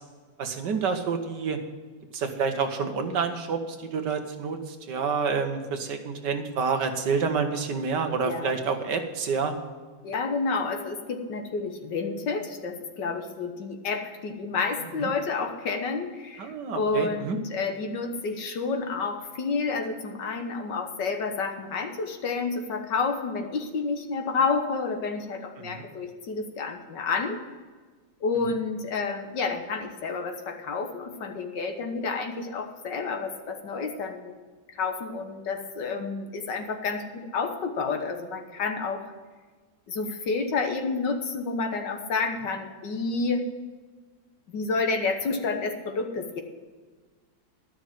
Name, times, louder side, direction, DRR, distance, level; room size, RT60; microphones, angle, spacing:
voice 1, 0.4-1.6 2.1-9.5 15.0-15.1 16.4-17.4 25.6-25.8, right 5 dB, 60° right, 6 dB, 1.6 m, -28 dB
voice 2, 10.0-27.4 28.2-34.4 34.7-39.1 39.9-43.4 44.5-46.4, left 4 dB, 60° left, 5 dB, 1.7 m, -30 dB
12.0 x 6.3 x 9.1 m, 1.4 s
omnidirectional pair, 2.2 m